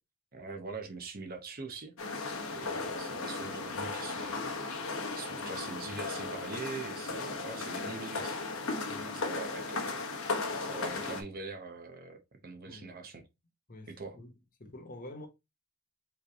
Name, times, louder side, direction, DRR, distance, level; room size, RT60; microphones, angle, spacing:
voice 1, 0.3-1.9 2.5-8.4 9.0-13.3 13.9-14.2, right 4 dB, 40° right, 0.7 m, -43 dB
sound 1, 2.0-11.2, left 3 dB, 65° left, 1.0 m, -36 dB
voice 2, 2.5-2.9 8.9-9.1 12.6-13.0 13.7-15.3, left 1 dB, 40° left, 1.0 m, -49 dB
4.8 x 3.3 x 2.9 m
head